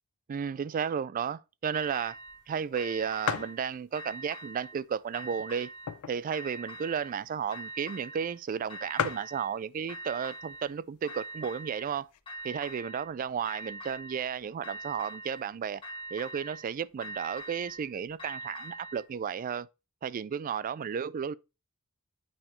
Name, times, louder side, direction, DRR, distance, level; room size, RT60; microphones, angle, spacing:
voice 1, 0.3-2.2 2.5-5.7 6.1-12.1 12.4-15.8 16.1-19.7 20.0-21.3, right 7 dB, 40° right, 0.3 m, -33 dB
sound 1, 1.7-2.4 2.8-3.6 3.9-4.8 5.1-6.0 6.3-7.2 7.5-8.4 8.7-9.6 9.9-10.7 11.1-11.9 12.3-13.1 13.4-14.3 14.6-15.5 15.8-16.7 17.0-19.1, right 1 dB, 25° left, 2.2 m, -43 dB
sound 2, 2.3-2.4 2.7-2.8 3.2-3.6 4.3-4.4 5.1-6.3 6.7-6.8 7.0-7.2 8.0-8.1 8.3-8.4 8.6-8.7 9.0-9.4 10.3-10.6 11.1-11.2 11.4-12.2, left 8 dB, 90° left, 0.5 m, -34 dB
8.5 x 5.9 x 3.1 m
head